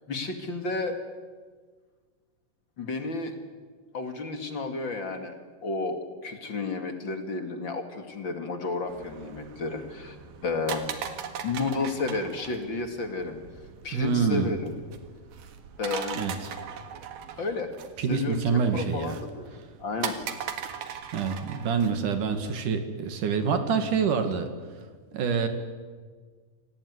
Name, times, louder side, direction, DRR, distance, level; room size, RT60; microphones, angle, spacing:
voice 1, 0.1-1.0 2.8-3.3 3.9-5.4 5.6-10.2 10.4-10.9 11.4-13.4 13.8-14.7 15.8-16.2 17.4-17.7 18.1-20.2, left 3 dB, 40° left, 7 dB, 2.4 m, -32 dB
sound 1, 8.9-22.5, right 8 dB, 85° right, 3.6 m, -40 dB
voice 2, 13.9-14.5 16.2-16.5 18.0-19.2 21.1-24.5 25.1-25.5, right 5 dB, 65° right, 8 dB, 3.4 m, -26 dB
27.0 x 18.5 x 9.6 m, 1.5 s
omnidirectional pair, 4.0 m